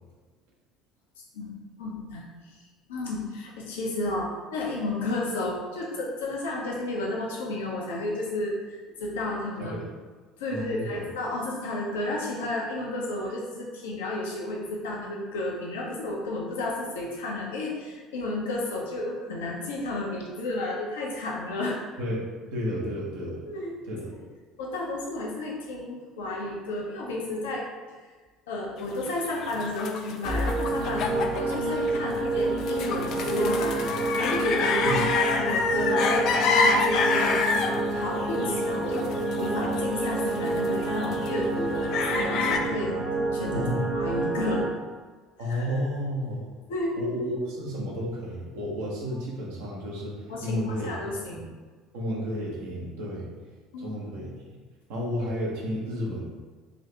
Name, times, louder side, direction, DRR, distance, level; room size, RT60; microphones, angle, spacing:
voice 1, 1.8-2.2 2.9-9.7 10.4-21.8 23.5-23.8 24.6-27.7 28.5-35.0 35.3-43.0 43.3-43.7 43.9-44.7 45.5-45.6 46.7-47.0 50.3-51.4 53.7-54.0, left 2 dB, 70° left, -2 dB, 0.8 m, -32 dB
voice 2, 10.5-11.1 22.0-22.2 22.5-23.4 23.9-24.1 34.8-35.1 43.5-43.9 45.4-46.5 47.0-51.5 51.9-53.3 53.8-54.6 54.9-56.3, equal, 65° right, -4 dB, 1.0 m, -32 dB
sound 1, 29.0-42.6, left 4 dB, 50° left, 0.4 m, -28 dB
sound 2, 30.2-44.7, right 2 dB, 40° right, 0.7 m, -28 dB
3.8 x 2.7 x 3.4 m, 1.4 s
figure-of-eight pair, 60°, 0 cm